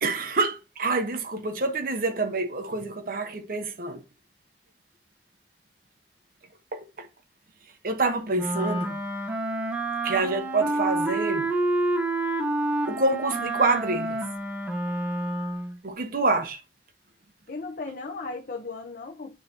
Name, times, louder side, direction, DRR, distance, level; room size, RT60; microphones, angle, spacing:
voice 1, 0.0-4.0 6.7-7.1 7.8-9.0 10.0-11.5 12.9-14.2 15.8-16.6, right 3 dB, 50° right, 0.9 m, -27 dB
Wind instrument woodwind instrument, 8.3-15.8, right 2 dB, 5° right, 1.1 m, -28 dB
voice 2, 17.5-19.4, left 3 dB, 50° left, 0.7 m, -36 dB
9.3 x 3.9 x 2.9 m
head